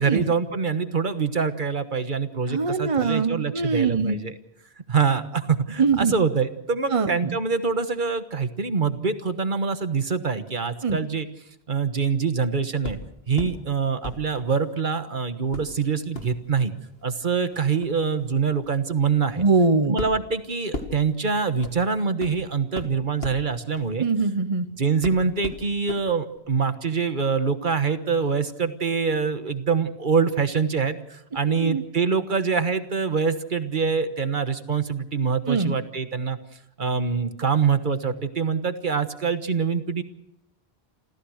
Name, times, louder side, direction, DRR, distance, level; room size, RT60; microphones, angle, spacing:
voice 1, 0.0-4.3 4.9-11.3 11.7-13.0 13.3-16.7 17.0-19.4 19.9-24.1 24.8-36.4 36.8-40.0, right 5 dB, 50° right, 10 dB, 1.4 m, -25 dB
voice 2, 2.5-4.2 5.8-6.2 6.9-7.4 10.8-11.0 19.4-20.0 24.0-24.7 31.5-31.8 35.5-35.7, right 4 dB, 35° right, 9 dB, 0.9 m, -22 dB
sound 1, 12.8-13.6 14.0-15.0 15.5-24.6 25.0-26.0 26.4-26.5, left 2 dB, 65° left, 2.5 m, -38 dB
28.0 x 15.0 x 6.4 m, 0.82 s
omnidirectional pair, 1.1 m